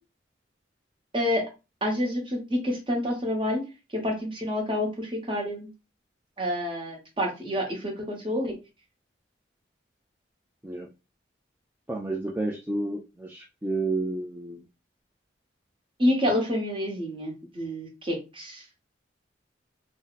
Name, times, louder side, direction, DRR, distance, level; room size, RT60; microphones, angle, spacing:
voice 1, 1.8-3.6 3.9-5.7 6.4-8.5 16.0-18.6, left 1 dB, 25° right, 0 dB, 1.0 m, -28 dB
voice 2, 11.9-14.6, right 2 dB, 10° right, -1 dB, 0.3 m, -30 dB
2.7 x 2.0 x 3.9 m, 0.29 s
head